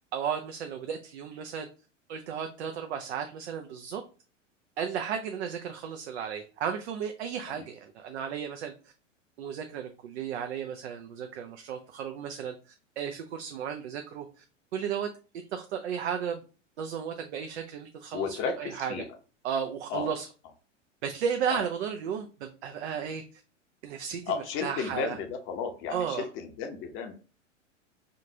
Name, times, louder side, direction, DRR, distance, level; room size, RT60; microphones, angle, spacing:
voice 1, 0.1-1.7 2.1-4.0 4.8-8.7 9.4-14.4 14.7-15.1 15.5-16.4 16.8-18.9 19.4-20.3 21.0-23.4 23.8-24.2 24.6-25.1 25.9-26.3, right 7 dB, 60° right, 5 dB, 0.6 m, -34 dB
voice 2, 18.1-19.1 19.9-20.1 21.5-21.7 24.3-27.1, left 6 dB, 35° left, 6 dB, 0.8 m, -33 dB
5.1 x 2.4 x 2.8 m, 0.35 s
figure-of-eight pair, 95°, 38 cm